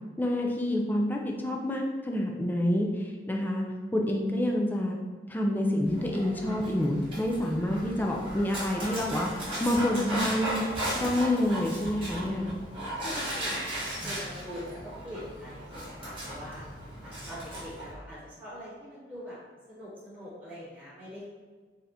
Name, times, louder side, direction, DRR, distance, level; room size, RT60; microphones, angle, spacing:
voice 1, 0.2-3.6 3.9-5.0 5.3-10.6 10.9-12.5, left 1 dB, 10° left, 0 dB, 0.3 m, -28 dB
Dog, 5.8-17.9, equal, 30° right, 1.1 m, -36 dB
voice 2, 13.0-13.7 14.0-16.6 17.0-19.4 19.7-21.3, equal, 10° right, -12 dB, 1.4 m, -43 dB
4.0 x 2.8 x 2.5 m, 1.4 s
head